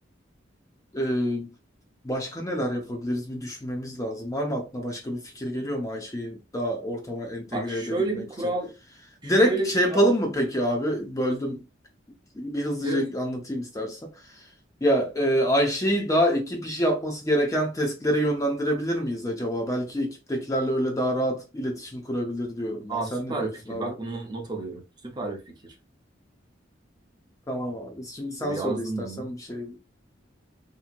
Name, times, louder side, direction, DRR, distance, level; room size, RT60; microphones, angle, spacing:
voice 1, 0.9-1.5 2.0-8.0 9.2-11.6 12.3-14.5 14.8-23.9 27.5-29.8, equal, 20° left, 0.5 m, -27 dB
voice 2, 7.5-8.7 9.2-10.0 12.8-13.0 22.9-25.7 28.4-29.3, right 2 dB, 25° right, 0.7 m, -31 dB
2.9 x 2.6 x 2.5 m
head